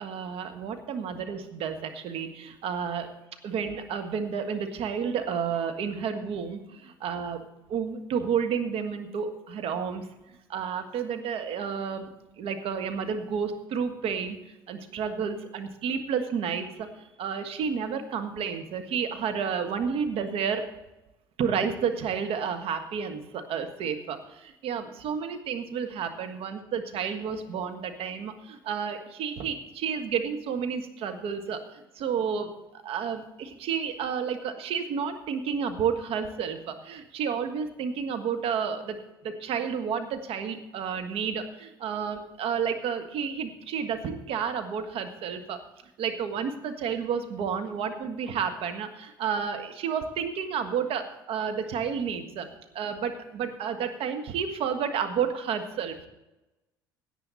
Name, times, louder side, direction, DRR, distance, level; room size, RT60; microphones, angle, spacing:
voice 1, 0.0-3.1 3.4-7.4 7.7-10.1 10.5-14.4 14.7-16.9 17.2-20.7 21.4-39.0 39.2-45.6 46.0-52.5 52.7-56.1, right 7 dB, 55° right, 7 dB, 1.5 m, -31 dB
17.0 x 9.1 x 4.1 m, 0.96 s
figure-of-eight pair, 60°, 12 cm